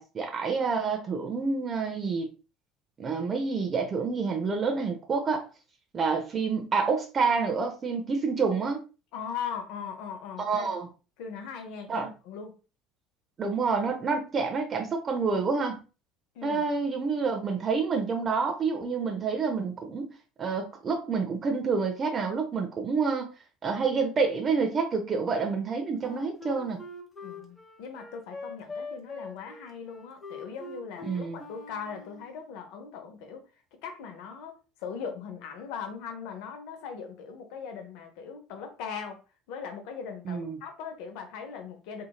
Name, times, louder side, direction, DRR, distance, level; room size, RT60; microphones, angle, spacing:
voice 1, 0.0-2.3 3.0-5.5 5.9-8.8 10.4-10.9 11.9-12.1 13.4-15.8 16.4-20.1 20.4-23.3 23.6-26.8 31.0-31.4 40.3-40.6, right 5 dB, 35° right, 0.6 m, -28 dB
voice 2, 9.1-10.7 11.2-12.6 16.3-16.6 27.2-33.4 33.8-39.2 39.5-42.1, left 6 dB, 65° left, 0.7 m, -39 dB
Wind instrument woodwind instrument, 26.0-32.3, left 3 dB, 25° left, 0.9 m, -42 dB
2.8 x 2.7 x 2.3 m
hypercardioid pair, 65°, 0 cm